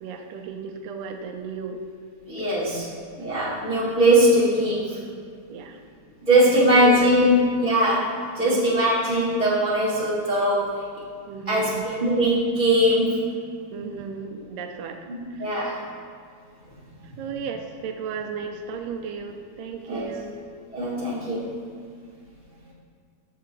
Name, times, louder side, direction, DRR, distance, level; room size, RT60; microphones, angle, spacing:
voice 1, 0.0-1.8 2.4-2.9 5.5-5.8 6.4-7.3 8.4-8.6 11.3-11.8 13.7-15.0 15.3-15.7 17.2-20.5, right 6 dB, 85° right, 4 dB, 1.5 m, -34 dB
voice 2, 2.3-2.8 3.1-5.0 6.3-10.8 11.5-13.2 15.1-15.8 19.9-20.1 20.7-21.5, right 1 dB, 55° left, -11 dB, 0.5 m, -21 dB
6.7 x 3.8 x 5.7 m, 2.1 s
omnidirectional pair, 3.5 m